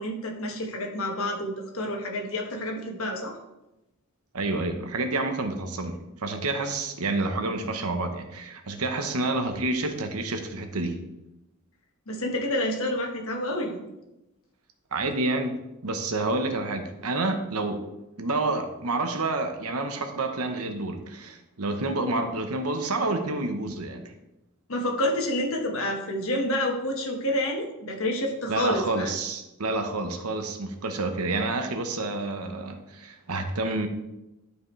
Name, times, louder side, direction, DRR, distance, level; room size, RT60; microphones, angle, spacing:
voice 1, 0.0-3.3 12.1-13.8 24.7-29.1, left 1 dB, 70° left, 1 dB, 1.5 m, -28 dB
voice 2, 4.3-11.0 14.9-17.8 18.2-24.1 28.5-33.9, right 2 dB, 85° right, 6 dB, 1.0 m, -29 dB
11.5 x 4.9 x 3.3 m, 0.93 s
head